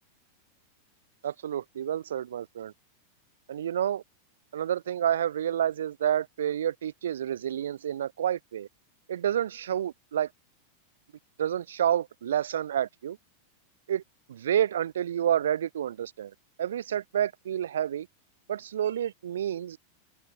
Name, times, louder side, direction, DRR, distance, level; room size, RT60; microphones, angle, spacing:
voice 1, 1.2-2.7 3.5-4.0 4.5-8.7 9.1-10.3 11.4-13.2 13.9-14.0 14.3-16.3 16.6-18.1 18.5-19.8, right 10 dB, 65° right, 0.3 m, -29 dB
figure-of-eight pair, 90°, 0 cm